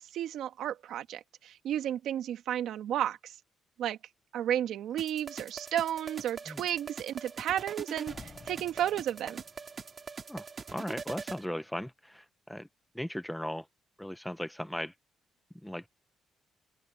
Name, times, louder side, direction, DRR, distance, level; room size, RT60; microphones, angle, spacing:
voice 1, 0.0-3.3 3.8-4.0 4.3-9.4, right 11 dB, 70° right, 2.0 m, -33 dB
Slam, 4.9-5.0 5.6-6.0 8.1-9.9 10.2-10.3, left 5 dB, 25° left, 6.3 m, -53 dB
sound 1, 5.0-11.4, right 5 dB, 25° right, 4.0 m, -43 dB
voice 2, 10.7-12.7 12.9-13.6 14.0-14.9 15.6-15.9, equal, 5° left, 0.7 m, -37 dB
cardioid pair, 170°, 0 cm